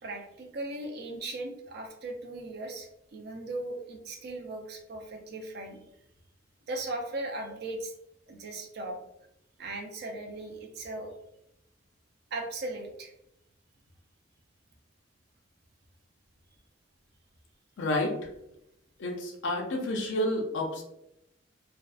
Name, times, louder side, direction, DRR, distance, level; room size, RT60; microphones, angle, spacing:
voice 1, 0.0-5.8 6.7-7.9 8.3-9.0 9.6-11.1 12.3-13.1, right 2 dB, 55° right, 2 dB, 0.4 m, -38 dB
voice 2, 17.8-18.2 19.0-20.8, left 1 dB, 65° left, 1 dB, 0.5 m, -30 dB
2.6 x 2.1 x 2.3 m, 0.82 s
head